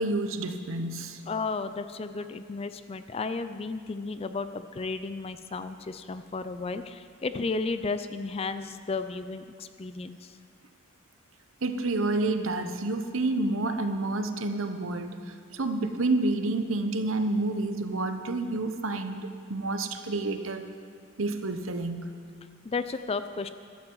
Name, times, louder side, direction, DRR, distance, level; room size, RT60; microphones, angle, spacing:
voice 1, 0.0-1.2 11.6-20.6 21.2-22.1, right 2 dB, 80° right, 8 dB, 0.9 m, -29 dB
voice 2, 1.3-10.4 22.6-23.5, left 4 dB, 30° left, 11 dB, 0.4 m, -33 dB
15.0 x 13.0 x 4.7 m, 2.2 s
head